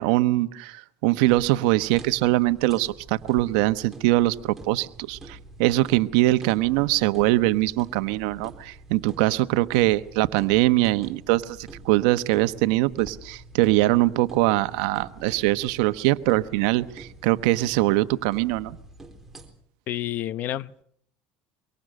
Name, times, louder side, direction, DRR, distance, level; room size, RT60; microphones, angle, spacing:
voice 1, 0.0-18.8, right 17 dB, 80° right, 1.0 m, -22 dB
sound 1, 1.2-19.5, right 2 dB, 5° right, 3.9 m, -46 dB
voice 2, 19.9-20.8, left 13 dB, 50° left, 0.8 m, -30 dB
24.0 x 23.5 x 6.6 m
supercardioid pair, 120°, 4 cm